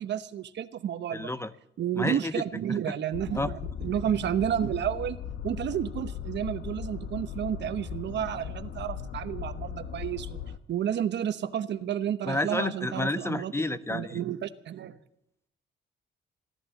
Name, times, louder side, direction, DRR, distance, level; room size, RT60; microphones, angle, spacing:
voice 1, 0.0-1.3 1.8-5.2 5.4-10.4 10.7-13.5 13.9-15.0, right 10 dB, 60° right, 12 dB, 0.9 m, -31 dB
voice 2, 1.1-1.5 1.9-2.4 2.7-2.8 3.3-3.5 12.3-14.2, left 2 dB, 15° left, 14 dB, 0.7 m, -30 dB
sound 1, 3.1-10.6, left 8 dB, 70° left, 1.1 m, -38 dB
16.0 x 11.0 x 7.3 m, 0.79 s
cardioid pair, 90°, 20 cm